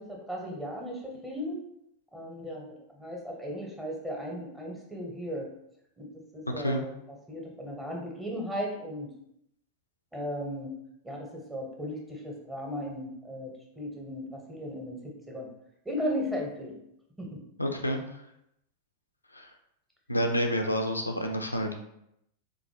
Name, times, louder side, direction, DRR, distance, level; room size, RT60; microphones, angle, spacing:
voice 1, 0.0-1.6 2.1-5.5 6.0-6.9 7.3-9.1 10.1-10.7 11.0-15.5 15.8-16.8 17.2-17.4, equal, 10° right, -1 dB, 0.8 m, -36 dB
voice 2, 6.5-6.8 17.6-18.2 19.3-19.5 20.1-21.8, equal, 85° left, 4 dB, 0.4 m, -29 dB
3.7 x 2.1 x 3.1 m, 0.79 s
figure-of-eight pair, 90°, 0 cm